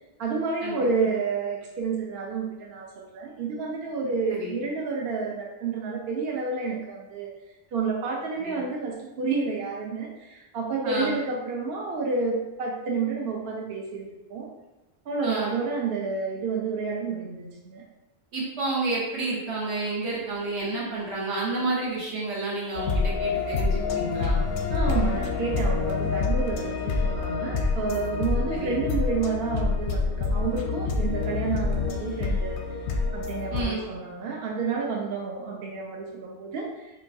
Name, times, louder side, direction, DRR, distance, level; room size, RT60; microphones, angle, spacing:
voice 1, 0.2-7.3 7.7-14.5 15.1-17.8 24.7-32.6 33.1-37.0, right 4 dB, 70° right, -1 dB, 0.8 m, -30 dB
voice 2, 4.2-4.6 8.4-8.6 10.8-11.2 15.2-15.5 18.3-24.4 28.5-28.8 33.5-33.8, right 2 dB, 90° right, -6 dB, 1.5 m, -30 dB
sound 1, 22.7-33.6, left 4 dB, 85° left, 0.9 m, -27 dB
5.8 x 2.3 x 2.6 m, 1.0 s
omnidirectional pair, 1.1 m